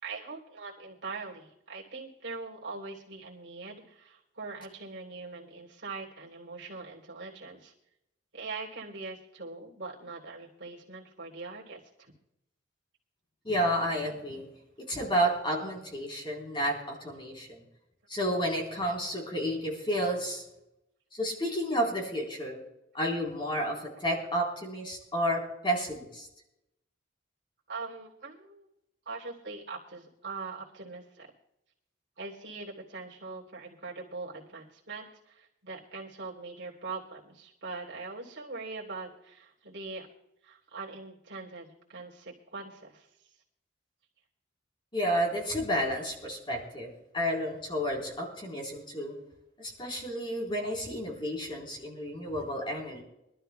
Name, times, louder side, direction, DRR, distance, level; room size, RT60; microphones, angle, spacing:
voice 1, 0.0-7.7 8.3-12.1 27.7-28.7 29.0-31.3 32.2-40.1 40.4-43.1, right 3 dB, 60° right, -4 dB, 3.0 m, -42 dB
voice 2, 13.4-14.5 14.9-17.6 18.1-20.4 21.1-22.6 22.9-26.3 44.9-49.2 49.6-53.0, equal, 25° left, -1 dB, 3.8 m, -31 dB
25.0 x 12.0 x 2.3 m, 0.87 s
head